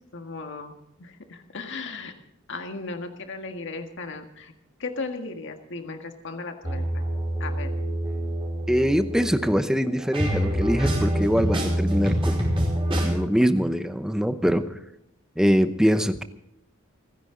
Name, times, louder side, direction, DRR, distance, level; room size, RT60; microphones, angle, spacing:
voice 1, 0.1-2.1 2.5-4.5 4.8-7.1 7.4-7.7, left 3 dB, 60° left, 5 dB, 1.7 m, -36 dB
sound 1, 6.6-13.1, equal, 25° right, 5.0 m, -26 dB
voice 2, 8.7-12.5 13.0-14.8 15.4-16.2, equal, 5° right, 10 dB, 0.8 m, -23 dB
29.0 x 10.5 x 3.9 m, 0.78 s
head